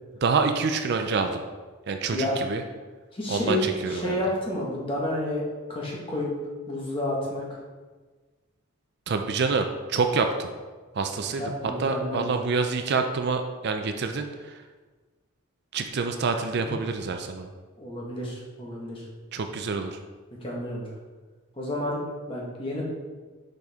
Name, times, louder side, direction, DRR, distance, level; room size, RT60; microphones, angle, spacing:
voice 1, 0.2-1.4 1.9-2.6 3.3-4.2 9.1-10.5 10.9-14.5 15.7-17.5 19.3-20.0, right 4 dB, 50° right, 6 dB, 0.4 m, -27 dB
voice 2, 3.1-5.4 5.7-6.3 6.7-7.6 11.4-12.3 16.6-16.7 17.8-19.0 20.4-20.9 21.6-22.0 22.3-22.8, left 1 dB, 25° left, -4 dB, 1.4 m, -30 dB
6.7 x 4.9 x 3.5 m, 1.3 s
head